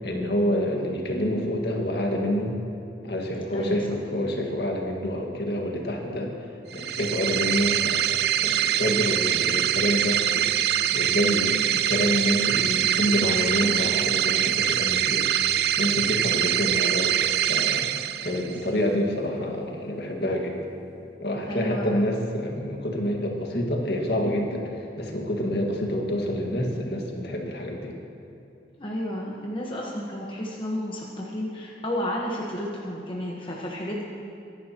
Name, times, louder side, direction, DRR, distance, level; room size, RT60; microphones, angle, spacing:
voice 1, 0.0-2.6 3.0-6.3 6.7-10.6 10.9-15.3 15.8-17.2 17.5-20.6 21.2-24.6 25.0-28.0, equal, 65° left, 0 dB, 1.8 m, -27 dB
sound 1, 6.7-18.6, right 11 dB, 65° right, 0.4 m, -24 dB
voice 2, 21.5-22.0 28.8-34.0, left 1 dB, 30° left, -3 dB, 1.2 m, -32 dB
23.0 x 11.0 x 3.0 m, 2.9 s
head